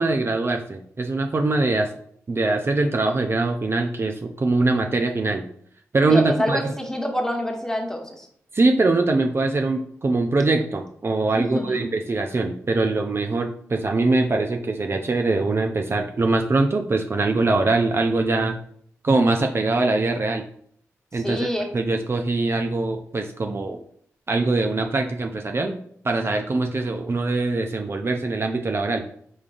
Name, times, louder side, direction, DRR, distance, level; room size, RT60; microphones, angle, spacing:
voice 1, 0.0-1.9 2.3-5.5 5.9-6.7 8.5-18.6 19.0-20.4 21.1-21.5 21.7-23.8 24.3-25.8 26.0-29.0, right 3 dB, 45° right, 3 dB, 0.5 m, -22 dB
voice 2, 6.1-8.3 11.3-11.9 21.1-21.7, equal, 10° left, 2 dB, 1.2 m, -26 dB
5.1 x 3.7 x 2.4 m, 0.62 s
supercardioid pair, 40°, 6 cm